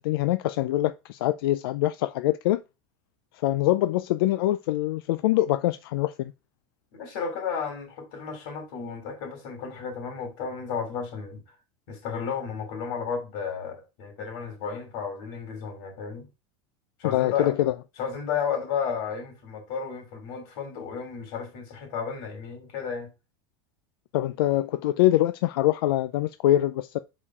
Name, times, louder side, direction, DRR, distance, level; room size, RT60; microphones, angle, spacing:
voice 1, 0.0-2.6 3.4-6.3 17.0-17.7 24.1-27.0, left 14 dB, 85° left, 0.4 m, -24 dB
voice 2, 6.9-11.4 11.9-16.3 17.0-17.5 18.0-23.1, left 6 dB, 55° left, 3.2 m, -33 dB
5.4 x 5.0 x 4.8 m
supercardioid pair, 170°, 12 cm